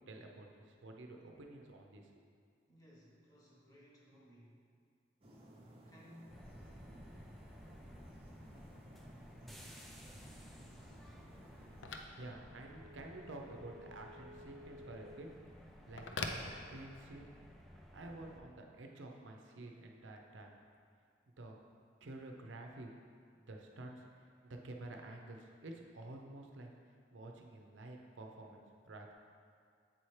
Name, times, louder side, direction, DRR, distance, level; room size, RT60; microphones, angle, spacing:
voice 1, 0.1-2.3 11.8-15.3 15.9-17.3 17.7-20.6 21.4-21.6 22.0-22.9 23.4-26.7 27.1-29.1, right 2 dB, 80° right, 2 dB, 0.6 m, -50 dB
voice 2, 2.7-4.6 5.7-6.6 11.4-11.7, equal, 20° left, -4 dB, 1.0 m, -60 dB
sound 1, 5.2-11.8, equal, 30° right, 0.7 m, -57 dB
sound 2, 6.3-18.4, equal, ahead, 0.3 m, -56 dB
Telephone, 9.5-17.3, left 3 dB, 75° left, 0.4 m, -49 dB
7.6 x 4.3 x 3.2 m, 2.2 s
head